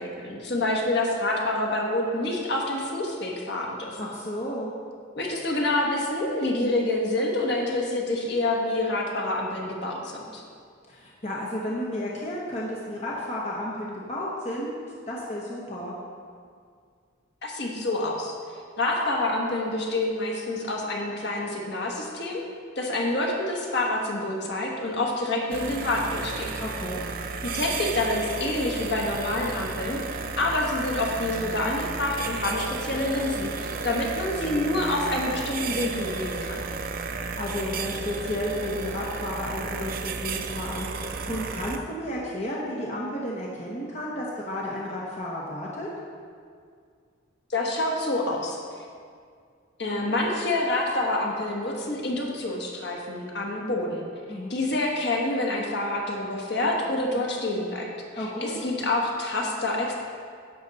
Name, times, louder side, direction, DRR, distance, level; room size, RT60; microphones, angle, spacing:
voice 1, 0.0-4.0 5.2-10.4 17.4-18.3 18.8-22.4 22.7-26.5 27.4-36.6 47.5-48.6 49.8-54.0 54.5-57.9 58.1-59.9, left 2 dB, 55° left, -1 dB, 1.4 m, -27 dB
voice 2, 4.0-4.7 10.9-14.8 15.1-15.9 26.6-27.1 37.1-45.9 54.3-54.5 58.2-58.6, left 1 dB, 35° left, -4 dB, 1.0 m, -32 dB
sound 1, 25.5-41.8, right 4 dB, 45° right, 0.5 m, -33 dB
10.5 x 7.1 x 4.1 m, 2.1 s
head